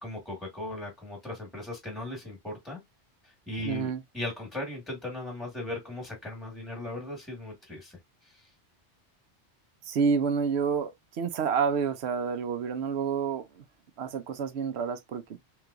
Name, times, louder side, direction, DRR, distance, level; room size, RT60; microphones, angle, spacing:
voice 1, 0.0-2.8 3.2-8.5, left 1 dB, ahead, 1.3 m, -38 dB
voice 2, 3.6-4.0 9.9-10.9 11.2-13.6 14.0-15.5, right 6 dB, 70° right, 0.9 m, -29 dB
3.4 x 3.2 x 2.4 m
omnidirectional pair, 1.1 m